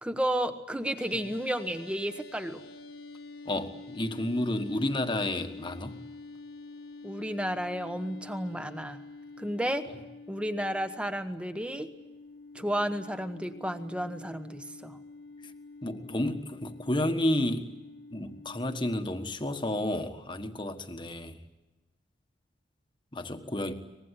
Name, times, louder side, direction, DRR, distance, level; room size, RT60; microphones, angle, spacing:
voice 1, 0.0-2.6 7.0-9.0 9.4-9.9 10.3-11.9 12.5-15.0, equal, 5° right, 8 dB, 1.2 m, -32 dB
sound 1, 1.0-19.4, left 3 dB, 55° left, 1.6 m, -48 dB
voice 2, 3.4-6.0 15.4-15.5 15.8-17.7 18.1-21.4 23.1-23.7, left 1 dB, 25° left, 7 dB, 1.4 m, -31 dB
24.0 x 20.5 x 9.9 m, 1.1 s
head